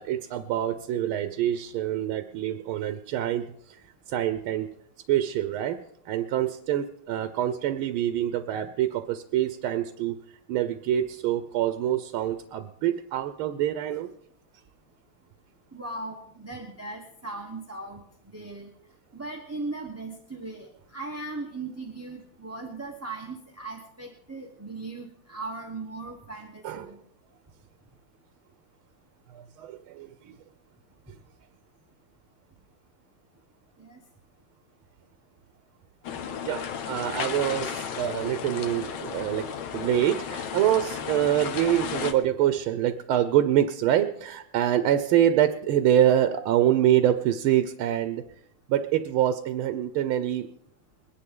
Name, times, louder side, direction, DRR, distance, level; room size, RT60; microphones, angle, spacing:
voice 1, 0.0-4.7 5.1-14.1 26.6-26.9 29.3-30.4 36.4-48.2 48.7-50.5, right 11 dB, 90° right, 10 dB, 1.6 m, -26 dB
voice 2, 15.7-18.7 19.1-27.0 33.8-34.0, right 3 dB, 10° right, 0 dB, 0.9 m, -38 dB
Mar sobre las piedras escollera +lowshelf, 36.0-42.1, left 7 dB, 85° left, 1.8 m, -34 dB
22.0 x 11.0 x 3.8 m, 0.70 s
omnidirectional pair, 2.2 m